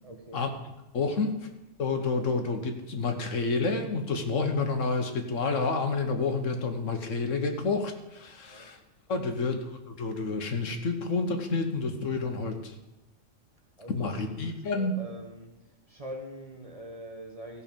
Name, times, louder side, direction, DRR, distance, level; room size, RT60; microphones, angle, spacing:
voice 1, 0.0-0.5 1.0-1.2 8.4-8.7 9.1-9.3 13.8-15.6 15.9-17.6, right 1 dB, 30° right, 1.0 m, -44 dB
voice 2, 0.9-1.3 1.8-8.8 9.1-9.6 10.0-12.7 13.9-15.0, left 4 dB, 70° left, 1.5 m, -29 dB
15.5 x 5.5 x 5.2 m
omnidirectional pair, 1.4 m